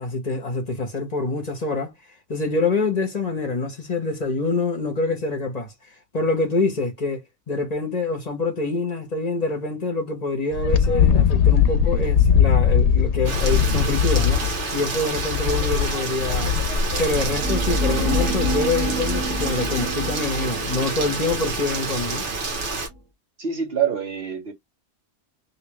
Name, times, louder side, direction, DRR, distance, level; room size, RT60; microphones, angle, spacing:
voice 1, 0.0-1.9 2.3-5.7 6.1-14.4 14.7-16.5 17.0-22.2, left 3 dB, 35° left, 0.9 m, -25 dB
Wind, 10.5-18.7, left 8 dB, 75° left, 0.9 m, -20 dB
Rain, 13.2-22.9, right 3 dB, 80° right, 1.3 m, -28 dB
sound 1, 17.0-22.9, equal, 5° left, 1.0 m, -28 dB
voice 2, 23.4-24.5, right 8 dB, 55° right, 1.2 m, -25 dB
3.2 x 2.8 x 3.1 m
omnidirectional pair, 1.2 m